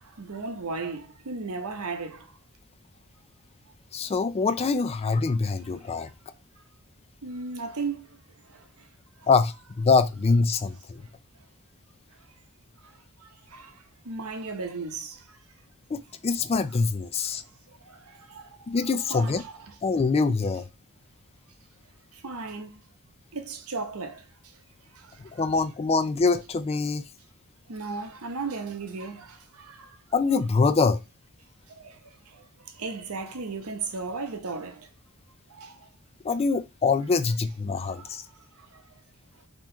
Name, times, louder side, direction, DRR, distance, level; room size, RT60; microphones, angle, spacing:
voice 1, 0.0-2.3 6.0-6.1 7.2-8.1 8.5-8.6 12.8-12.9 13.2-15.4 17.8-18.6 19.0-19.8 22.1-22.8 23.3-24.2 24.9-25.5 27.7-30.0 31.8-32.0 32.3-34.9 35.5-35.9 37.8-38.1 38.7-38.8, right 4 dB, 75° right, 0.8 m, -36 dB
voice 2, 3.9-6.1 9.3-11.0 15.9-17.4 18.7-19.4 19.8-20.7 25.3-27.0 30.1-31.0 36.2-38.2, left 4 dB, 25° left, 0.3 m, -24 dB
3.8 x 3.0 x 4.3 m
head